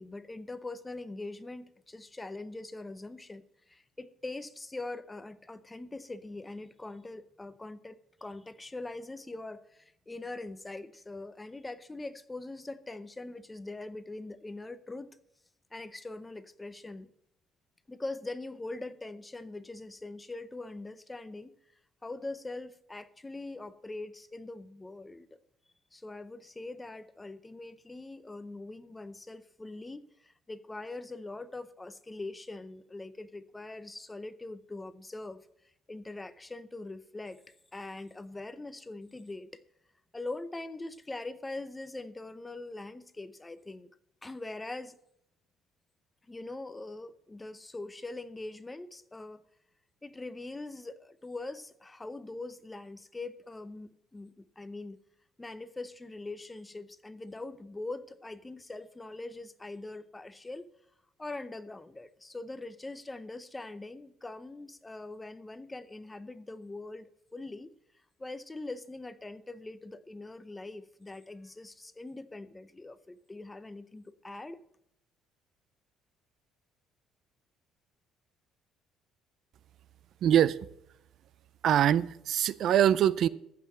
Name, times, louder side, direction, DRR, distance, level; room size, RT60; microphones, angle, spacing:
voice 1, 0.0-15.2 15.7-17.1 17.9-21.5 22.0-25.4 25.9-35.5 35.9-39.6 40.1-43.9 44.2-45.0 46.3-49.4 50.0-55.0 55.4-60.7 61.2-67.7 68.2-74.6, left 2 dB, 15° left, 0.6 m, -42 dB
voice 2, 80.2-80.6 81.6-83.3, right 10 dB, 55° right, 0.4 m, -23 dB
14.0 x 5.8 x 7.4 m
cardioid pair, 125°, 0 cm